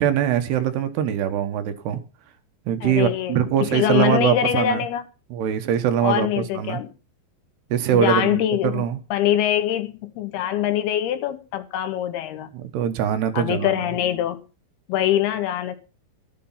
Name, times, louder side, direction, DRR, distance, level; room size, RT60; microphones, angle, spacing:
voice 1, 0.0-2.0 2.7-4.8 5.3-6.8 7.7-9.0 12.5-13.8, right 10 dB, 75° right, 3.0 m, -22 dB
voice 2, 2.8-5.0 6.0-6.9 7.9-8.8 9.1-12.5 13.3-14.4 14.9-15.8, left 11 dB, 75° left, 2.7 m, -23 dB
13.0 x 8.7 x 5.6 m
omnidirectional pair, 5.1 m